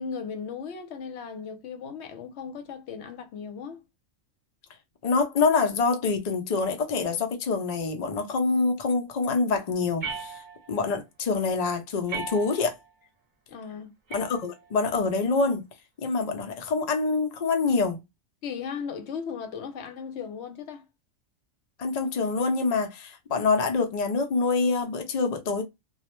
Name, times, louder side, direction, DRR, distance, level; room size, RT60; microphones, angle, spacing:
voice 1, 0.0-3.8 13.5-13.9 18.4-20.8, left 6 dB, 65° left, 0.8 m, -37 dB
voice 2, 5.0-12.8 14.1-15.6 16.0-18.0 21.8-25.6, left 4 dB, 85° left, 0.3 m, -26 dB
sound 1, 10.0-10.9 12.1-12.9 14.1-14.9, right 5 dB, 45° right, 0.8 m, -38 dB
2.3 x 2.0 x 2.9 m
omnidirectional pair, 1.4 m